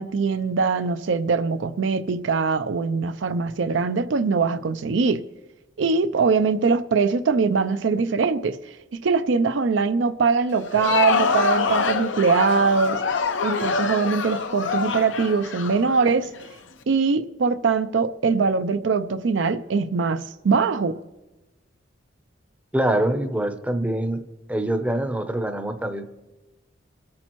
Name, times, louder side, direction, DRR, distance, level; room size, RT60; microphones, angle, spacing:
voice 1, 0.0-5.2 5.8-8.6 9.0-13.0 13.4-16.3 16.9-21.0, right 5 dB, 70° right, 11 dB, 0.5 m, -22 dB
Crowd, 10.6-16.5, left 5 dB, 75° left, 0.7 m, -25 dB
voice 2, 22.7-24.2 24.5-26.0, right 1 dB, 5° right, 8 dB, 0.7 m, -24 dB
24.0 x 8.5 x 3.0 m, 1.1 s
head